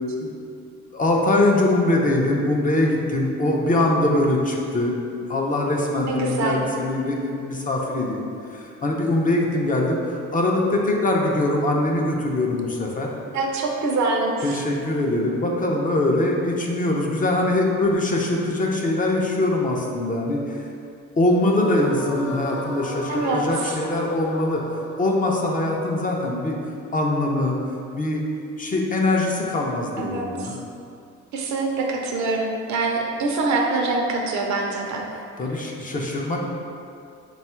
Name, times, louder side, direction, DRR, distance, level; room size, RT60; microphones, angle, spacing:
voice 1, 0.9-5.0 5.3-8.3 8.5-13.1 14.4-20.6 21.2-24.6 25.0-26.6 26.9-27.6 27.9-28.2 28.6-30.5 35.4-36.4, left 1 dB, 25° left, -1 dB, 0.5 m, -22 dB
voice 2, 6.1-6.6 13.3-14.6 23.1-23.7 30.0-30.5 31.3-35.1, right 3 dB, 65° right, 1 dB, 0.6 m, -24 dB
sound 1, 21.5-26.8, left 2 dB, 85° left, 0.8 m, -36 dB
3.6 x 2.3 x 4.3 m, 2.5 s
cardioid pair, 90°, 30 cm